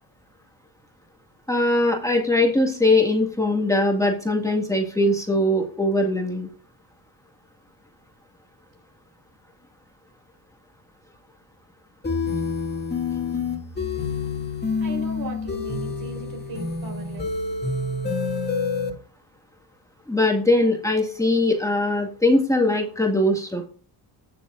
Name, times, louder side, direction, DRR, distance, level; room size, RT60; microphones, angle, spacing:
voice 1, 1.5-6.5 20.1-23.7, left 1 dB, 5° left, 1 dB, 1.9 m, -21 dB
sound 1, 12.0-18.9, left 4 dB, 25° left, 2.2 m, -27 dB
voice 2, 14.8-17.3, right 1 dB, 55° right, 4 dB, 4.2 m, -37 dB
15.5 x 7.0 x 2.5 m, 0.39 s
cardioid pair, 100°, 43 cm